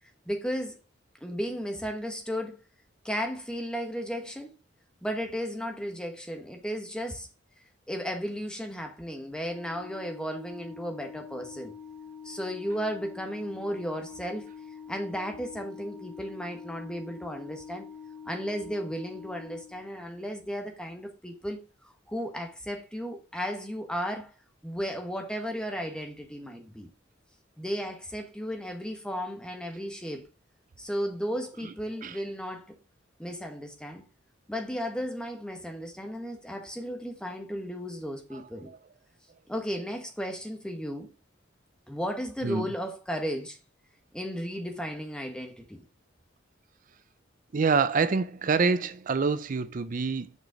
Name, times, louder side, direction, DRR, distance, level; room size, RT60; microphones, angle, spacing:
voice 1, 0.3-0.8 1.2-2.6 3.0-4.5 5.0-7.3 7.9-11.7 12.2-14.5 14.9-17.9 18.3-24.3 24.6-26.9 27.6-30.2 30.8-32.8 33.2-34.0 34.5-38.7 39.5-41.1 41.9-43.6 44.1-45.8, equal, 5° left, 1.2 m, -34 dB
Organ, 9.4-20.3, left 6 dB, 25° left, 0.9 m, -45 dB
voice 2, 47.5-50.3, right 4 dB, 45° right, 0.5 m, -26 dB
6.6 x 5.0 x 4.8 m
head